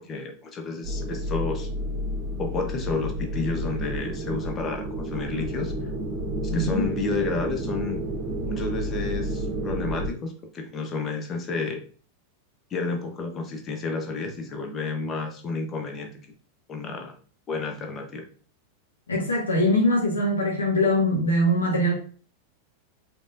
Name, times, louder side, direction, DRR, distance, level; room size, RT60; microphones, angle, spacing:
voice 1, 0.0-1.7 2.4-5.7 6.5-8.0 8.4-11.8 12.7-16.2 16.7-17.1 17.5-18.3, left 4 dB, 25° left, 4 dB, 1.0 m, -31 dB
sound 1, 0.8-10.1, right 1 dB, 35° right, 1.7 m, -30 dB
voice 2, 6.5-6.8 19.1-21.9, left 1 dB, 70° left, -3 dB, 1.8 m, -22 dB
5.2 x 3.8 x 2.6 m, 0.41 s
figure-of-eight pair, 90°, 0 cm